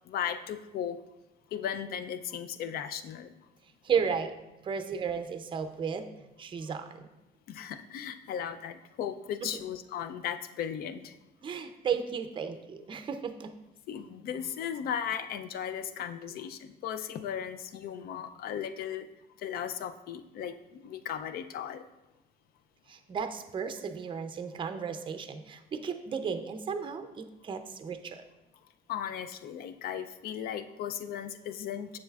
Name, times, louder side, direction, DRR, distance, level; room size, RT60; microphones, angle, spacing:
voice 1, 0.0-1.0 1.5-3.3 7.5-11.2 13.9-19.1 19.4-21.8 25.8-25.9 28.9-32.0, left 9 dB, 65° left, 11 dB, 0.5 m, -36 dB
voice 2, 3.8-4.3 4.6-6.1 6.4-7.1 9.4-9.5 11.4-13.5 22.9-28.2, right 6 dB, 30° right, 8 dB, 0.5 m, -34 dB
7.3 x 6.3 x 2.4 m, 0.96 s
cardioid pair, 110°, 17 cm